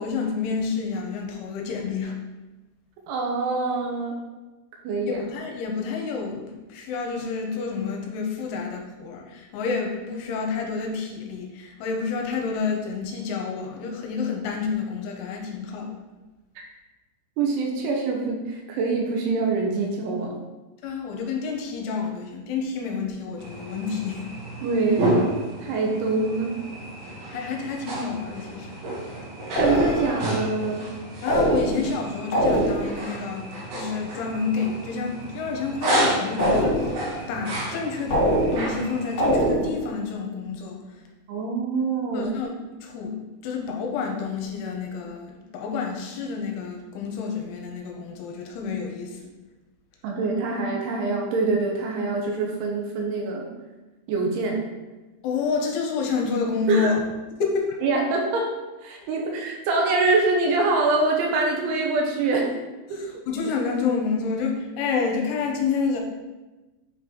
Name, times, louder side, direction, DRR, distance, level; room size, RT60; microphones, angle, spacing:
voice 1, 0.0-2.2 5.1-16.0 20.8-24.3 27.3-28.8 31.2-33.5 33.7-40.8 42.1-42.5 42.8-49.3 55.2-57.0 57.4-57.7 62.9-66.0, left 5 dB, 85° left, 1 dB, 3.0 m, -29 dB
voice 2, 3.1-4.2 4.8-5.2 16.6-16.7 17.4-20.4 24.6-25.1 25.6-26.5 29.6-30.8 41.3-42.3 50.0-53.5 54.1-54.6 56.7-56.9 57.8-58.5 58.8-62.5 62.9-63.0, right 3 dB, 80° right, 0 dB, 3.1 m, -24 dB
sound 1, 23.4-39.3, right 1 dB, 65° right, 2.8 m, -31 dB
sound 2, 29.6-30.3 31.3-32.0 32.3-33.1 36.4-37.1 38.1-38.8 39.2-39.9, equal, 50° left, 1.8 m, -23 dB
8.5 x 3.8 x 3.0 m, 1.1 s
omnidirectional pair, 5.6 m